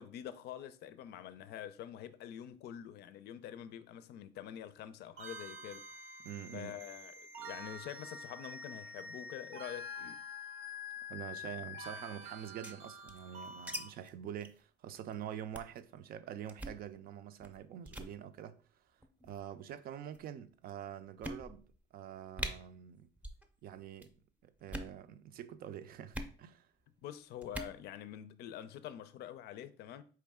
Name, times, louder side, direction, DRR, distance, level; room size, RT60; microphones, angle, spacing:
voice 1, 0.0-5.9 6.5-10.2 27.0-30.0, left 10 dB, 75° left, 0.5 m, -46 dB
sound 1, 5.2-13.9, left 2 dB, 90° right, 0.9 m, -47 dB
voice 2, 6.2-6.7 11.1-18.6 19.2-23.1 23.6-24.2 24.4-26.7, right 10 dB, 60° right, 0.5 m, -46 dB
sound 2, 12.4-13.8 14.0-14.1 14.4-14.6 14.9-15.1 15.5-15.8 16.5-16.8 17.4-17.6 17.9-18.1 19.0-19.4 20.1-20.2 20.7-20.8 21.2-21.8 22.0-22.1 22.4-22.5 23.2-23.4 23.7-24.1 24.6-25.0 26.1-26.3 27.4-27.8, right 1 dB, 10° right, 0.6 m, -42 dB
4.6 x 3.2 x 3.5 m
cardioid pair, 110°, 17 cm